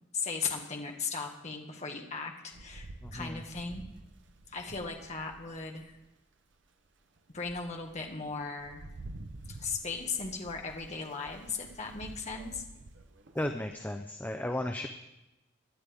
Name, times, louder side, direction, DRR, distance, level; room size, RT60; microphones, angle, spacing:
voice 1, 0.1-3.8 4.5-6.0 7.3-8.9 9.6-12.6, left 4 dB, 35° left, 2 dB, 1.5 m, -37 dB
Rain, 2.5-6.0 6.6-6.7 7.2-13.7, right 2 dB, 65° right, 0.8 m, -49 dB
voice 2, 3.0-3.4 13.3-14.9, left 1 dB, 10° left, 5 dB, 0.5 m, -34 dB
18.5 x 11.0 x 3.5 m, 0.96 s
head